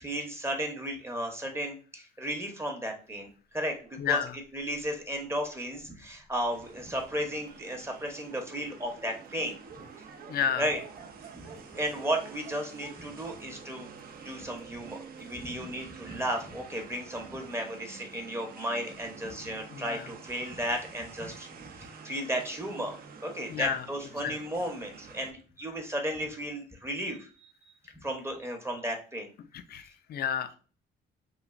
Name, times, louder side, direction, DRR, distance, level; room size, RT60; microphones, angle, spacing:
voice 1, 0.0-4.2 4.5-9.6 10.6-10.8 11.3-13.9 14.2-23.0 23.2-27.3 28.0-29.3, equal, 15° right, 3 dB, 0.7 m, -34 dB
Dog, 3.8-6.8 7.5-7.6 7.9-8.0 8.1-14.5, right 6 dB, 90° right, 0.7 m, -53 dB
voice 2, 4.0-4.4 10.3-10.7 19.7-20.1 23.5-23.9 24.2-24.4 29.5-30.5, left 8 dB, 55° left, 11 dB, 0.4 m, -31 dB
sound 1, 6.5-25.3, right 6 dB, 50° right, 0.5 m, -49 dB
3.1 x 2.4 x 2.4 m, 0.38 s
cardioid pair, 90°, 20 cm